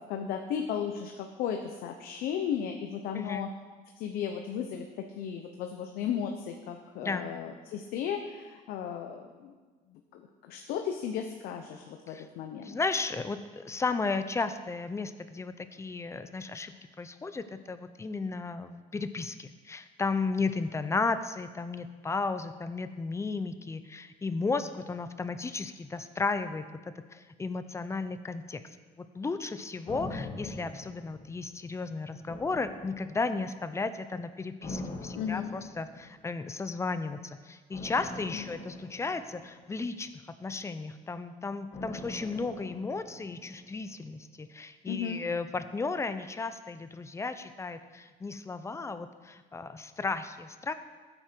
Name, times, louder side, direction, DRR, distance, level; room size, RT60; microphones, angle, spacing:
voice 1, 0.0-3.5 4.0-9.5 9.9-12.8 35.1-35.5 38.3-38.5 44.9-45.2, left 8 dB, 80° left, 4 dB, 0.9 m, -35 dB
voice 2, 12.6-26.6 27.1-28.6 29.0-37.2 37.4-40.1 40.4-50.7, left 4 dB, 20° left, 11 dB, 0.7 m, -34 dB
sound 1, 29.9-31.8 32.3-33.5 34.6-36.3 37.7-40.1 41.7-43.9 44.2-44.3, left 2 dB, 45° left, 1.8 m, -43 dB
15.0 x 8.8 x 4.6 m, 1.4 s
cardioid pair, 115°, 15 cm